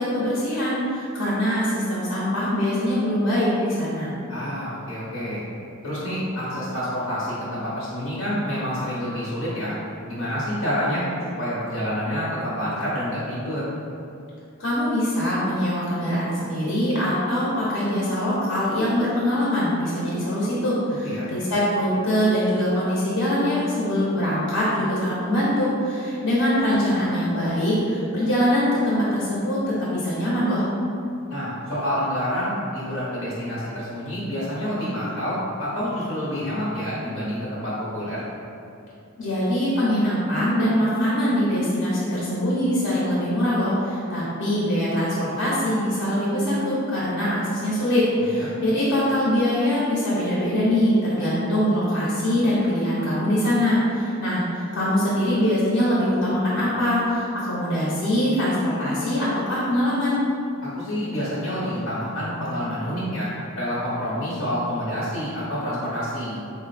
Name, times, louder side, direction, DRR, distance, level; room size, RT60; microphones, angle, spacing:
voice 1, 0.0-4.1 14.6-29.6 29.9-30.6 39.2-60.2, equal, 65° left, -8 dB, 0.9 m, -23 dB
voice 2, 4.3-5.4 5.8-9.7 10.1-13.6 21.0-21.3 31.3-38.2 48.3-48.5 60.7-63.3 63.6-66.4, equal, 90° left, -9 dB, 1.1 m, -28 dB
4.3 x 2.1 x 4.2 m, 2.7 s
head